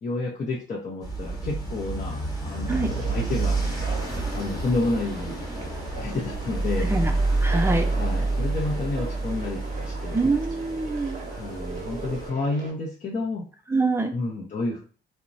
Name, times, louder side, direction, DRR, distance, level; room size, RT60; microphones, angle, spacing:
voice 1, 0.0-3.6 4.3-6.9 7.9-10.2 11.3-13.4 14.1-14.8, left 3 dB, 40° left, -4 dB, 0.6 m, -30 dB
sound 1, 1.0-12.3, right 3 dB, 20° left, 1.0 m, -28 dB
Conversation, 2.7-12.7, right 4 dB, 40° right, 0.7 m, -40 dB
voice 2, 7.4-7.9 10.1-11.2 13.7-14.1, right 3 dB, 10° right, 4 dB, 0.5 m, -24 dB
2.9 x 2.1 x 2.6 m, 0.37 s
cardioid pair, 90°, 20 cm